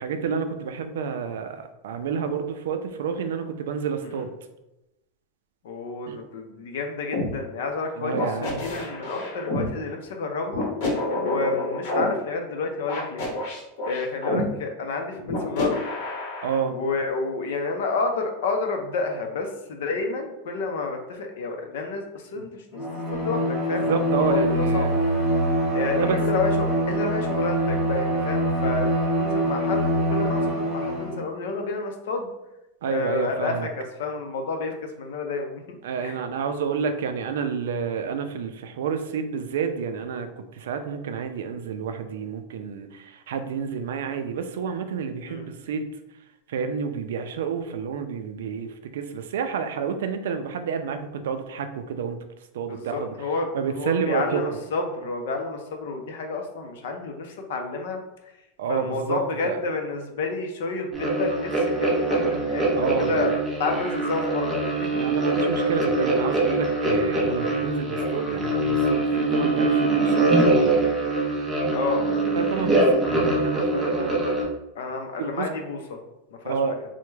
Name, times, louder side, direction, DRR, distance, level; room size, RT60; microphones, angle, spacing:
voice 1, 0.0-4.3 6.1-6.2 8.0-8.7 16.4-16.8 22.4-22.5 23.9-24.9 25.9-26.2 32.8-33.7 35.8-45.9 46.5-52.2 52.5-53.1 53.5-54.4 58.6-59.6 62.7-63.3 65.0-70.8 72.3-74.5 75.2-75.5 76.5-76.7, right 6 dB, 90° right, 8 dB, 0.3 m, -29 dB
voice 2, 5.6-10.7 11.2-13.2 13.9-15.8 16.7-23.9 24.2-24.9 25.7-32.3 32.8-36.2 45.2-45.5 52.7-58.3 58.7-65.0 71.7-72.1 74.8-76.0 76.4-76.7, left 3 dB, 70° left, 4 dB, 0.5 m, -30 dB
sound 1, 7.1-7.3 8.1-9.7 10.5-12.0 12.9-14.4 15.3-16.6, left 2 dB, 50° left, 0.8 m, -28 dB
Bowed string instrument, 22.7-31.3, right 1 dB, 15° left, 1.1 m, -24 dB
sound 2, 60.9-74.4, right 2 dB, 5° right, 0.4 m, -23 dB
3.3 x 2.1 x 3.1 m, 0.94 s
supercardioid pair, 180°, 0 cm